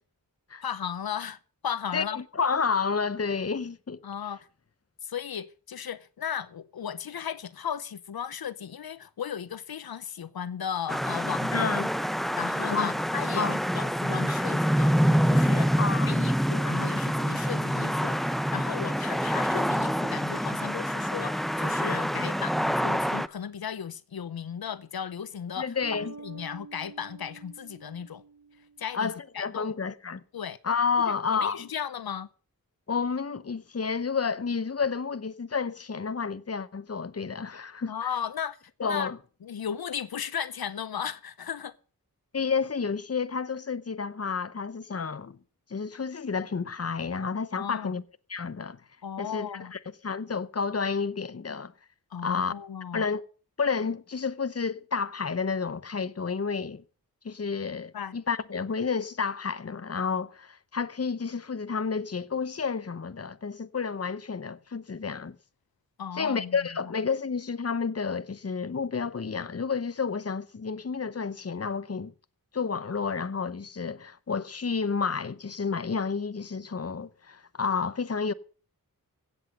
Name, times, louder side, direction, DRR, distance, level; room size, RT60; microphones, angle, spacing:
voice 1, 0.6-2.2 4.0-4.4 5.0-11.9 12.4-15.8 16.1-25.7 26.2-28.2 28.8-29.7 30.3-30.6 31.1-32.3 37.9-39.1 39.4-41.7 47.5-48.0 49.0-49.7 52.1-53.1 57.9-58.1 66.0-66.6, left 8 dB, 85° left, 0.7 m, -36 dB
voice 2, 1.9-4.0 11.5-11.9 12.7-12.9 13.4-13.6 15.8-16.3 25.6-26.1 28.9-30.2 30.6-31.7 32.9-38.1 38.8-39.2 42.3-45.4 45.7-48.0 48.3-48.8 49.2-51.7 52.2-52.5 52.9-53.2 53.6-56.8 57.2-65.4 66.2-72.1 72.5-78.3, left 5 dB, 45° left, 0.9 m, -30 dB
sound 1, 10.9-23.3, equal, ahead, 0.7 m, -26 dB
sound 2, 25.8-29.2, right 4 dB, 45° right, 2.6 m, -47 dB
16.0 x 7.9 x 6.5 m
wide cardioid pair, 65°, 35 cm